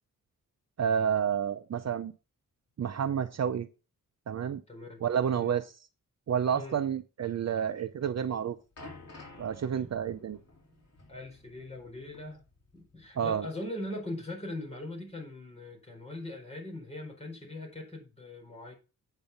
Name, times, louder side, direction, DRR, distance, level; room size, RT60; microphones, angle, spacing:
voice 1, 0.8-2.1 2.8-3.7 4.3-4.6 5.0-5.7 6.3-8.6 9.4-10.4 13.2-13.5, right 8 dB, 50° right, 0.6 m, -29 dB
voice 2, 4.7-5.0 5.3-5.5 6.5-6.8 11.1-12.4 12.7-18.7, left 1 dB, 20° left, 4.4 m, -41 dB
sound 1, 8.2-13.0 13.3-13.5 14.2-14.3, left 2 dB, 50° left, 3.3 m, -52 dB
9.0 x 5.5 x 5.5 m
wide cardioid pair, 130°, 33 cm